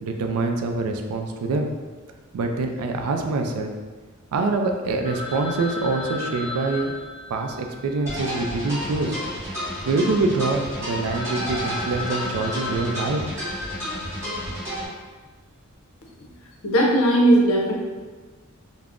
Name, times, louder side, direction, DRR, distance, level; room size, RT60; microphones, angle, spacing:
voice 1, 0.0-1.7 2.3-3.7 4.3-6.9 7.3-9.2 9.8-13.2, right 3 dB, 75° right, 4 dB, 0.3 m, -25 dB
Telephone, 5.0-9.4 9.7-9.8 10.3-10.4 10.7-10.8 11.0-14.0, left 2 dB, 35° left, 0.8 m, -35 dB
sound 1, 8.1-14.9, equal, 10° right, 0.8 m, -31 dB
voice 2, 16.6-17.7, right 1 dB, 65° left, -2 dB, 0.6 m, -17 dB
2.4 x 2.0 x 3.4 m, 1.4 s
head